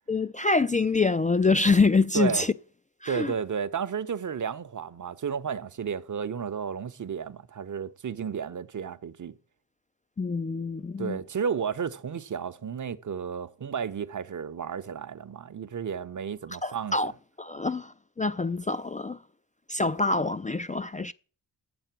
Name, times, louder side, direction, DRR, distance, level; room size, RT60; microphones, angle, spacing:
voice 1, 0.1-2.5 3.0-3.3 10.2-11.2 16.6-17.1 17.4-19.2 19.7-21.1, left 3 dB, 20° left, 0.4 m, -25 dB
voice 2, 2.1-2.4 3.1-9.4 11.0-17.1, right 7 dB, 45° right, 0.9 m, -32 dB
9.0 x 7.9 x 6.0 m
supercardioid pair, 50°, 42 cm